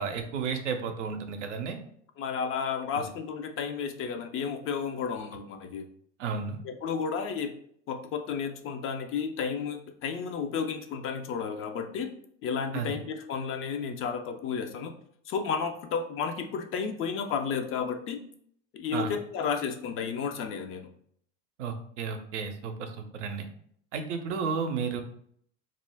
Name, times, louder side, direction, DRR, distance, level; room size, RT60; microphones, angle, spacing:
voice 1, 0.0-1.8 2.9-3.0 6.2-6.6 12.7-13.0 18.9-19.1 21.6-23.5 23.9-25.0, right 5 dB, 80° right, 6 dB, 0.6 m, -33 dB
voice 2, 2.2-5.9 6.6-7.5 7.9-12.1 12.4-14.9 15.3-18.2 18.7-20.9, left 6 dB, 35° left, 6 dB, 0.4 m, -32 dB
2.4 x 2.1 x 3.3 m, 0.65 s
hypercardioid pair, 80°, 36 cm